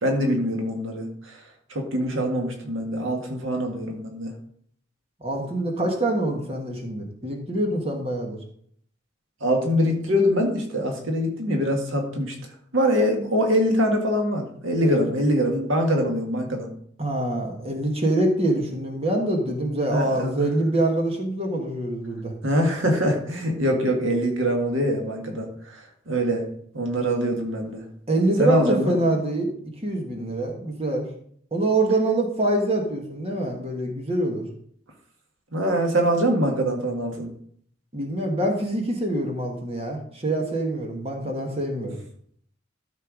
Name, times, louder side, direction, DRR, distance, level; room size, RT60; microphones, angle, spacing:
voice 1, 0.0-1.4 1.7-4.3 9.4-12.4 12.7-16.7 19.9-20.3 22.4-25.8 26.1-26.5 26.7-27.8 28.4-29.0 35.5-37.3, equal, 85° right, 2 dB, 1.7 m, -23 dB
voice 2, 5.2-8.4 14.8-15.1 17.0-22.3 28.1-29.5 29.8-31.0 31.5-34.5 37.9-42.0, right 1 dB, 30° right, 2 dB, 1.6 m, -25 dB
13.0 x 4.6 x 5.0 m, 0.63 s
head